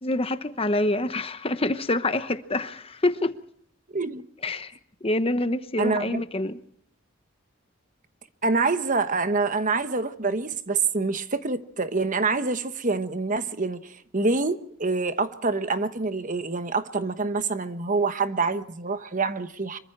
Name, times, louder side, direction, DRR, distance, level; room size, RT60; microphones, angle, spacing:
voice 1, 0.0-3.4 4.4-4.7 5.0-6.6, left 2 dB, 30° left, 1.0 m, -26 dB
voice 2, 3.9-4.3 5.8-6.2 8.4-19.8, right 3 dB, 40° right, 1.1 m, -26 dB
26.0 x 23.5 x 4.6 m
head